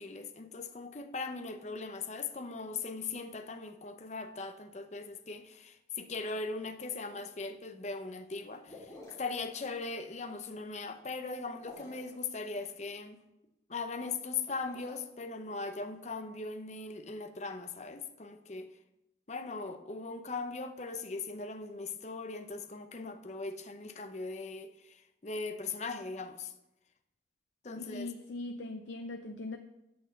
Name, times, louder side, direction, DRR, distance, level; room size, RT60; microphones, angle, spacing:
voice 1, 0.0-8.9 9.2-13.2 13.7-18.7 19.3-26.5 27.6-28.1, left 4 dB, 40° left, 0.7 m, -39 dB
sound 1, 8.6-9.4 11.5-12.2 14.3-14.9, left 2 dB, 20° left, 3.0 m, -51 dB
voice 2, 27.8-29.6, left 2 dB, 80° left, 0.6 m, -40 dB
8.5 x 6.0 x 7.2 m
head